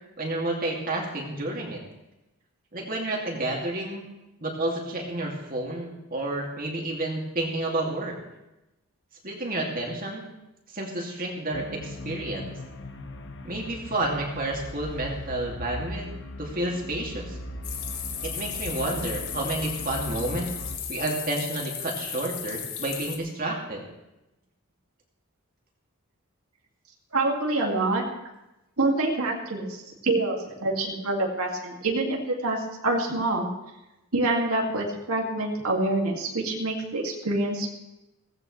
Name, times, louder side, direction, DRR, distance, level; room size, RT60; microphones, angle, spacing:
voice 1, 0.2-1.8 2.7-4.1 4.4-8.2 9.2-10.2 10.7-12.5 13.4-16.1 16.4-17.4 18.2-20.5 20.9-23.8, right 1 dB, 40° right, -1 dB, 2.5 m, -30 dB
sound 1, 11.5-20.8, left 1 dB, 55° left, 1.1 m, -39 dB
sound 2, 17.6-23.2, left 8 dB, 75° left, 1.8 m, -35 dB
voice 2, 27.1-28.0 28.8-33.5 34.1-37.7, right 2 dB, 80° right, 0 dB, 2.3 m, -26 dB
17.5 x 16.0 x 3.3 m, 0.95 s
head